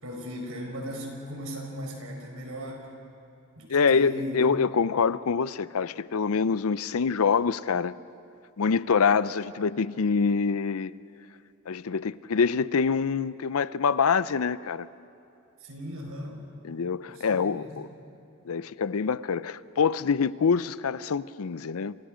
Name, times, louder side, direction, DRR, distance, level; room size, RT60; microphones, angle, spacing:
voice 1, 0.0-2.9 3.6-4.4 15.6-16.3 17.1-17.8, equal, 70° right, 4.9 m, -37 dB
voice 2, 3.7-7.9 8.6-10.9 11.7-14.9 16.6-17.9 18.5-22.0, left 5 dB, 70° left, 0.5 m, -25 dB
28.5 x 27.0 x 5.1 m
head